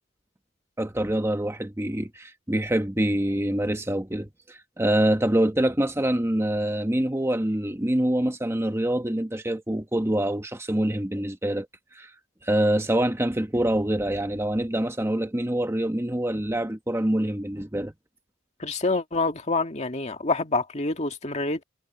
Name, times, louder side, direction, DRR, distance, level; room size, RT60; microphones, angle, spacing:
voice 1, 0.8-11.7 11.9-12.1 12.4-17.9, right 1 dB, 10° right, 1.0 m, -25 dB
voice 2, 18.6-21.6, left 3 dB, 35° left, 1.9 m, -27 dB
head